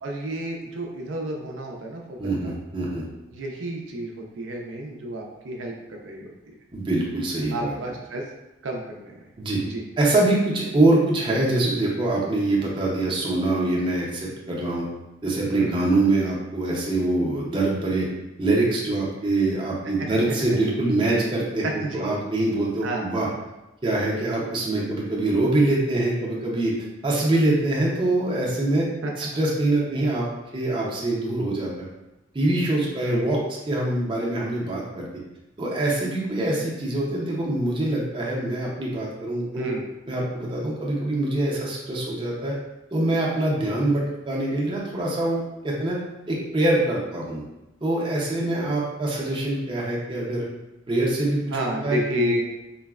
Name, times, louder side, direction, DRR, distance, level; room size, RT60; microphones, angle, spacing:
voice 1, 0.0-2.5 3.3-6.3 7.5-8.3 8.6-9.1 9.6-9.8 15.5-15.8 20.0-20.1 21.6-22.2 22.8-23.1 29.0-29.1 33.0-33.2 39.5-39.8 51.5-52.4, right 1 dB, 75° right, 1 dB, 0.4 m, -30 dB
voice 2, 2.2-3.0 6.7-7.7 9.4-9.6 10.0-14.9 15.2-18.1 18.4-23.3 23.8-26.7 27.0-28.9 29.2-30.3 30.5-31.8 32.3-33.4 33.7-35.1 35.6-39.7 40.1-42.6 42.9-46.0 46.3-47.4 47.8-50.5 50.9-51.6 51.8-52.4, right 2 dB, 25° right, -4 dB, 0.5 m, -24 dB
3.9 x 2.0 x 2.3 m, 0.99 s
head